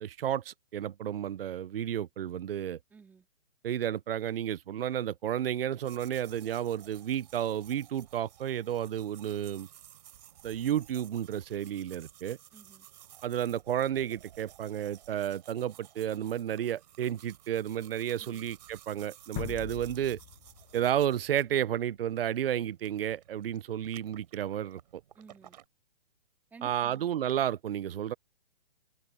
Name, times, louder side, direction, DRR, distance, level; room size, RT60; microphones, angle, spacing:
voice 1, 0.0-2.8 3.6-9.7 10.4-12.4 13.2-20.2 20.7-25.0 26.6-28.1, right 10 dB, 60° right, 0.6 m, -32 dB
voice 2, 2.9-3.3 12.5-12.9 18.2-18.4 25.2-25.6 26.5-27.1, right 5 dB, 5° right, 2.1 m, -53 dB
sound 1, 5.8-25.7, right 11 dB, 40° right, 3.7 m, -55 dB
sound 2, 19.4-22.2, left 18 dB, 15° left, 1.0 m, -43 dB
hypercardioid pair, 165°, 32 cm